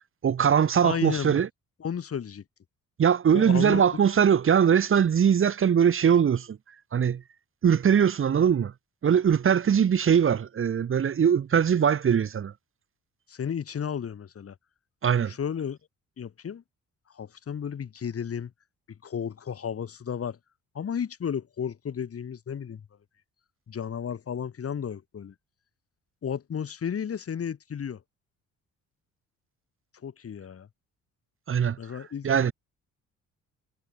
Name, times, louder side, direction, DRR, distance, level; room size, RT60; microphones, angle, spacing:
voice 1, 0.0-1.5 3.0-6.6 6.9-7.2 7.6-8.7 9.0-12.5 15.0-15.3 31.5-31.8 32.2-32.5, right 8 dB, 45° right, 1.3 m, -21 dB
voice 2, 0.8-1.4 1.8-2.4 3.3-3.8 13.3-14.5 15.3-15.8 16.2-16.6 17.1-18.5 19.0-20.4 20.7-22.8 23.7-25.3 26.2-28.0 30.0-30.7 31.8-32.3, left 7 dB, 50° left, 4.1 m, -33 dB
cardioid pair, 90°, 30 cm